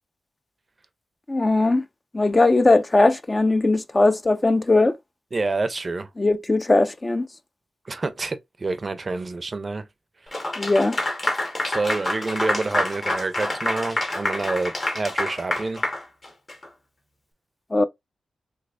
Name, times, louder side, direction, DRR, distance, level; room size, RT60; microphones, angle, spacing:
voice 1, 1.3-1.8 2.1-4.9 6.2-7.3 10.6-11.0 17.7-17.8, left 2 dB, 25° left, 0.3 m, -19 dB
voice 2, 5.3-6.1 7.8-9.9 10.2-10.5 11.6-15.9, right 3 dB, 35° right, 0.4 m, -28 dB
Clapping / Applause, 10.3-16.7, left 1 dB, 40° left, 1.2 m, -27 dB
3.2 x 3.2 x 2.4 m
cardioid pair, 85°, 0 cm